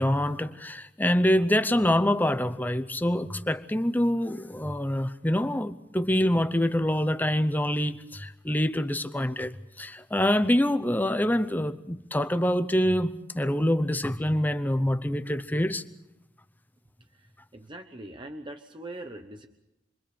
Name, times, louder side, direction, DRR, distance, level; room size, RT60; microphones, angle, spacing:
voice 1, 0.0-15.8, left 1 dB, 10° left, 0.7 m, -25 dB
voice 2, 17.1-19.5, right 1 dB, 25° right, 0.9 m, -42 dB
27.5 x 23.0 x 5.2 m
head